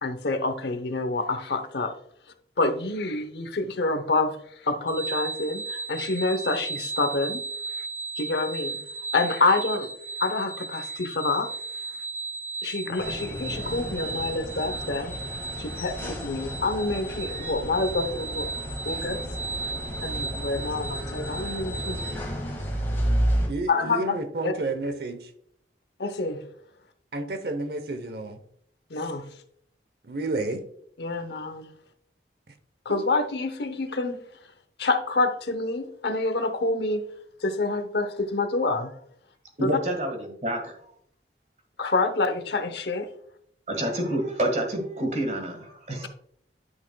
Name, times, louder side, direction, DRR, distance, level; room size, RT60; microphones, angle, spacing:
voice 1, 0.0-1.9 2.6-4.4 4.6-7.4 8.2-8.8 9.1-9.9 10.2-11.5 12.6-15.2 15.6-18.5 18.9-19.2 20.0-22.6 23.7-24.1 24.4-24.5 26.0-26.4 28.9-29.2 31.0-31.7 32.8-34.2 34.8-37.0 37.4-38.9 39.6-39.7 41.8-43.1, left 3 dB, 70° left, 9 dB, 0.8 m, -27 dB
sound 1, 4.9-22.1, right 3 dB, 10° right, 0.8 m, -35 dB
sound 2, 13.0-23.5, equal, 15° left, 1.7 m, -32 dB
voice 2, 23.5-25.3 27.1-28.4 30.0-30.6, right 2 dB, 60° right, 8 dB, 0.8 m, -30 dB
voice 3, 39.6-40.9 43.7-46.1, right 1 dB, 40° right, 4 dB, 1.7 m, -28 dB
11.0 x 6.2 x 2.3 m, 0.66 s
head